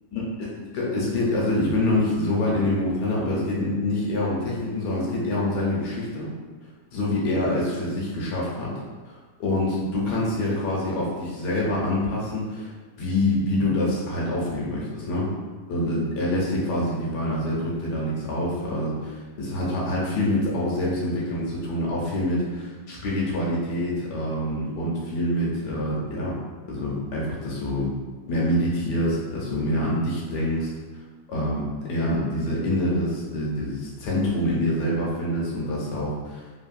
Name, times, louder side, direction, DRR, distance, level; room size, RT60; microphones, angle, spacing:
voice 1, 0.1-6.3 6.9-8.7 9.1-9.2 9.4-12.7 13.0-15.3 15.7-26.4 26.7-27.9 28.3-30.7 31.3-31.6 31.9-36.4, left 1 dB, 70° left, -5 dB, 1.3 m, -26 dB
3.3 x 2.2 x 2.5 m, 1.4 s
omnidirectional pair, 1.9 m